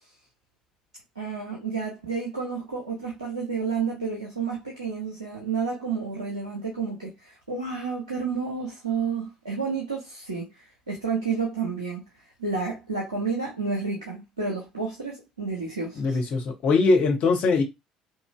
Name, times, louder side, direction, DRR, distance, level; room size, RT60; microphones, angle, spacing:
voice 1, 1.2-10.5 10.9-12.0 12.4-16.2, right 5 dB, 90° right, 0.7 m, -30 dB
voice 2, 16.0-17.6, left 3 dB, 50° left, 0.9 m, -21 dB
3.0 x 2.6 x 2.3 m
figure-of-eight pair, 55°, 3 cm